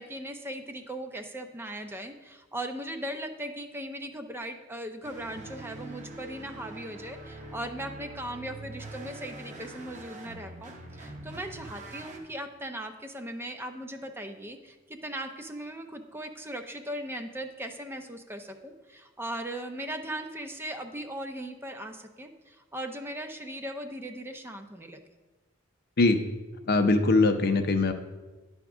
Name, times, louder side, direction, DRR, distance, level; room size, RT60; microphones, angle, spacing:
voice 1, 0.0-25.0, right 1 dB, 10° right, 6 dB, 0.4 m, -38 dB
sound 1, 5.0-12.2, right 2 dB, 35° right, 0.9 m, -44 dB
voice 2, 26.7-27.9, left 3 dB, 50° left, 7 dB, 0.6 m, -22 dB
9.9 x 3.6 x 6.0 m, 1.2 s
head